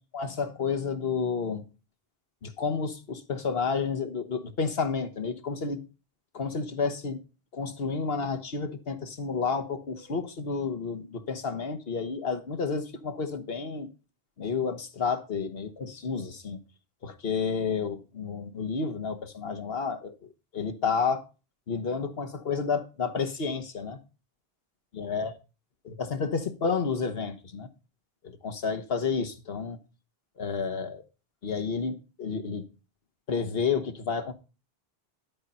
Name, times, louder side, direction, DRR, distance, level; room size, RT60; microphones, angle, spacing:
voice 1, 0.1-1.6 2.4-5.8 6.3-7.2 7.5-13.9 14.4-16.6 17.0-20.1 20.5-21.2 21.7-24.0 25.0-25.3 25.8-27.7 28.2-29.8 30.4-31.0 31.4-32.6 33.3-34.3, left 5 dB, 70° left, 1.4 m, -30 dB
11.5 x 5.3 x 5.6 m
omnidirectional pair, 1.0 m